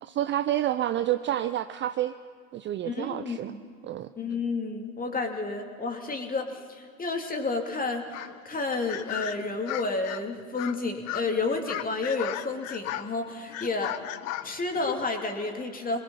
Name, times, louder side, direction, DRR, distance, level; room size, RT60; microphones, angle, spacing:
voice 1, 0.0-2.1 2.5-3.5 3.8-4.1, right 12 dB, 25° right, 11 dB, 0.5 m, -29 dB
voice 2, 2.8-3.6 4.2-8.1 8.4-14.0 14.4-16.0, left 3 dB, 20° left, 4 dB, 2.7 m, -31 dB
sound 1, 8.1-8.4 8.9-10.2 10.6-10.8 11.1-11.3 11.6-13.1 13.5-15.1, left 13 dB, 65° left, 1.0 m, -35 dB
27.0 x 20.5 x 5.6 m, 2.1 s
hypercardioid pair, 90°, 42 cm